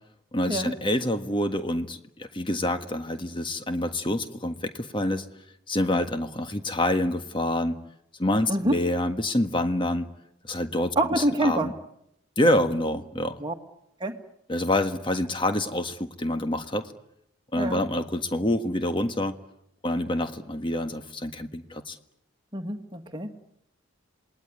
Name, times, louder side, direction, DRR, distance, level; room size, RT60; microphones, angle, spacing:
voice 1, 0.3-5.3 5.7-7.8 8.2-10.1 10.4-11.7 12.4-13.4 14.5-16.9 17.5-19.4 19.8-22.0, left 1 dB, 25° left, 8 dB, 1.5 m, -27 dB
voice 2, 11.0-11.7 13.4-13.5 14.0-14.2 17.6-17.8 22.5-23.3, right 1 dB, 20° right, 4 dB, 1.9 m, -26 dB
27.5 x 20.5 x 9.7 m, 0.78 s
head